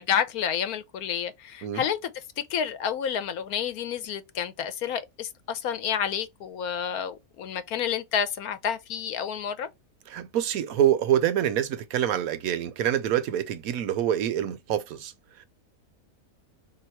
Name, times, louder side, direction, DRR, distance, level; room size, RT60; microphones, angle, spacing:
voice 1, 0.0-2.1 2.4-9.7, left 8 dB, 80° left, 1.2 m, -29 dB
voice 2, 10.1-15.1, right 10 dB, 75° right, 1.1 m, -26 dB
3.5 x 2.8 x 4.4 m
omnidirectional pair, 1.6 m